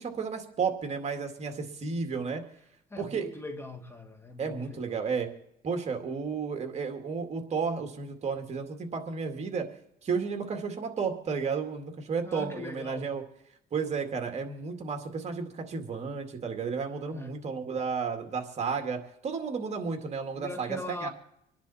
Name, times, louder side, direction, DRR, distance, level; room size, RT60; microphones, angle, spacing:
voice 1, 0.0-2.4 3.0-3.3 4.4-5.3 5.6-9.7 10.0-13.2 13.7-21.1, right 5 dB, 40° right, 2.2 m, -32 dB
voice 2, 2.9-5.0 12.2-13.1 17.1-17.4 20.3-21.1, left 2 dB, 15° left, 1.9 m, -41 dB
26.0 x 10.5 x 4.3 m
cardioid pair, 110°, 17 cm